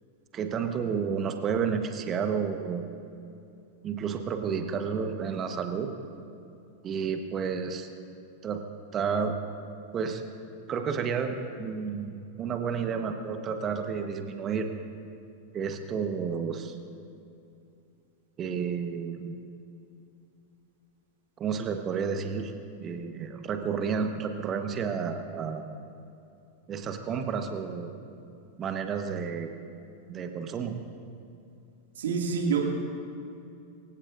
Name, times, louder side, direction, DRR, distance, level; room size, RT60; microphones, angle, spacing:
voice 1, 0.3-2.9 3.8-5.9 6.8-7.9 8.4-8.6 8.9-9.3 9.9-10.2 10.7-14.7 15.5-16.8 18.4-19.4 21.4-22.5 22.8-25.7 26.7-27.9 28.6-29.5 30.1-30.7, right 6 dB, 30° right, 6 dB, 1.2 m, -31 dB
voice 2, 32.0-32.6, right 6 dB, 60° right, 1 dB, 2.3 m, -26 dB
25.0 x 16.5 x 2.6 m, 2.6 s
figure-of-eight pair, 90°, 0 cm